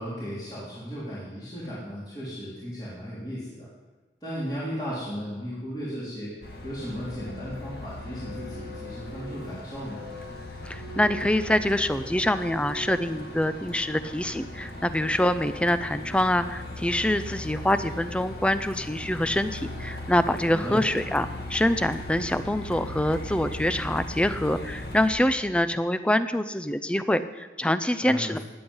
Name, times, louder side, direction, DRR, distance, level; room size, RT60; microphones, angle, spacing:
voice 1, 0.0-3.7 4.2-6.3 6.6-10.0 20.5-20.8 28.0-28.4, equal, 25° left, -9 dB, 3.6 m, -35 dB
Truck, 6.4-25.1, left 1 dB, 65° left, 2.3 m, -38 dB
voice 2, 10.6-28.4, left 1 dB, 5° left, 12 dB, 0.5 m, -25 dB
16.5 x 9.9 x 5.5 m, 1.2 s
head